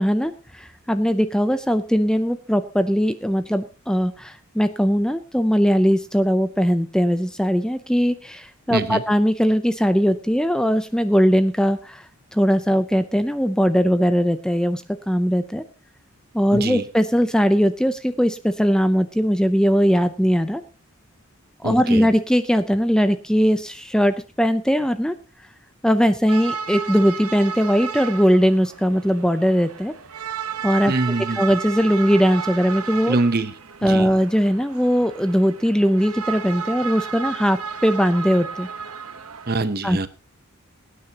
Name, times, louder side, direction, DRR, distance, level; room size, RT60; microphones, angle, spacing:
voice 1, 0.0-12.0 12.3-15.6 16.3-20.6 21.6-25.1 25.8-29.9 30.6-30.9 31.4-33.2 33.8-38.7 39.8-40.0, equal, 5° left, 0.5 m, -20 dB
voice 2, 8.7-9.0 16.5-16.8 21.6-22.1 30.9-31.4 33.1-33.5 33.8-34.1 39.5-40.1, right 2 dB, 45° right, 0.8 m, -24 dB
sound 1, 26.3-39.5, right 6 dB, 90° right, 1.1 m, -33 dB
22.5 x 9.7 x 2.9 m
head